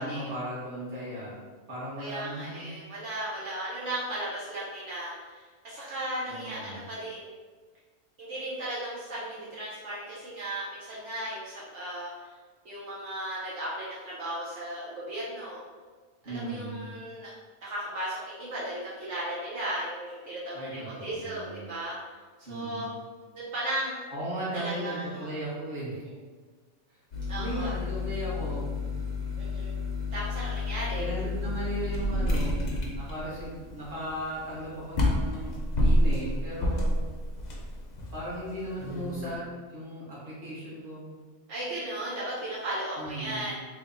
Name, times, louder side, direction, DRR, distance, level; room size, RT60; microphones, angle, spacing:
voice 1, 0.0-1.4 1.7-2.7 6.3-6.8 16.2-16.8 20.5-21.6 22.5-22.9 24.1-26.0 26.9-27.0 27.3-28.7 31.0-37.0 38.1-41.2 43.0-43.5, right 1 dB, 45° right, -8 dB, 1.3 m, -36 dB
voice 2, 2.0-7.3 8.2-12.3 12.6-15.6 16.2-17.3 17.6-22.0 22.5-22.9 23.3-24.0 24.5-25.3 27.3-27.7 29.4-29.7 30.1-31.1 41.5-43.5, right 1 dB, 75° right, -8 dB, 1.1 m, -36 dB
sound 1, 27.1-39.4, left 1 dB, 45° left, 0.6 m, -30 dB
3.3 x 2.2 x 3.7 m, 1.4 s
omnidirectional pair, 1.2 m